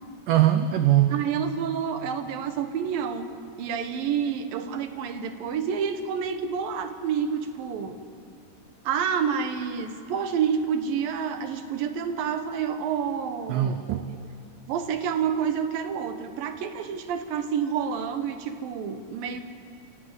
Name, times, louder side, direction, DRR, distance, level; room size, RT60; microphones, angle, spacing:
voice 1, 0.3-1.2 13.5-14.1, right 12 dB, 90° right, 9 dB, 1.9 m, -21 dB
voice 2, 1.1-8.0 8.8-14.0 14.7-19.4, right 7 dB, 70° right, 8 dB, 2.6 m, -29 dB
28.0 x 15.5 x 8.0 m, 2.7 s
omnidirectional pair, 4.8 m